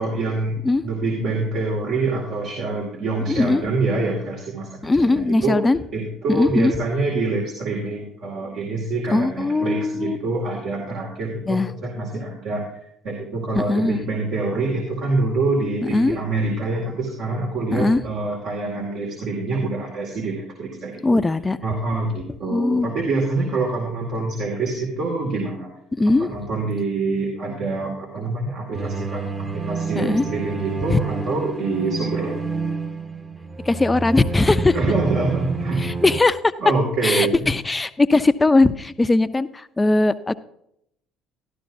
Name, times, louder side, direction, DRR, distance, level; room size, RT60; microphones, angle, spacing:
voice 1, 0.0-0.6 0.8-4.7 5.0-5.6 5.9-12.7 13.0-21.2 21.6-25.7 26.2-32.4 34.7-35.8 36.6-37.5, right 3 dB, 60° right, -2 dB, 2.2 m, -25 dB
voice 2, 3.3-3.6 4.8-5.8 6.3-6.7 9.1-10.2 11.5-11.7 13.5-14.0 15.9-16.2 17.7-18.0 21.0-21.6 22.5-22.9 26.0-26.3 30.0-30.2 30.9-31.0 33.7-34.8 35.8-36.4 37.0-40.4, left 2 dB, 20° left, 13 dB, 0.6 m, -19 dB
sound 1, 28.7-36.2, right 4 dB, 25° right, 1.3 m, -29 dB
13.0 x 12.0 x 2.7 m, 0.74 s
hypercardioid pair, 60°, 0 cm